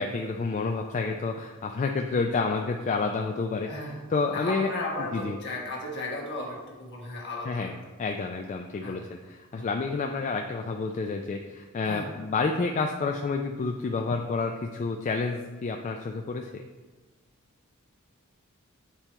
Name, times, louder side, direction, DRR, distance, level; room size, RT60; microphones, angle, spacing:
voice 1, 0.0-3.7 4.1-4.7 5.1-5.4 7.5-7.7 8.0-16.6, left 4 dB, 35° left, 3 dB, 0.3 m, -29 dB
voice 2, 3.6-7.7 8.8-9.0 9.5-9.7 11.8-12.1, left 2 dB, 55° left, -2 dB, 1.5 m, -35 dB
8.5 x 2.9 x 4.4 m, 1.3 s
head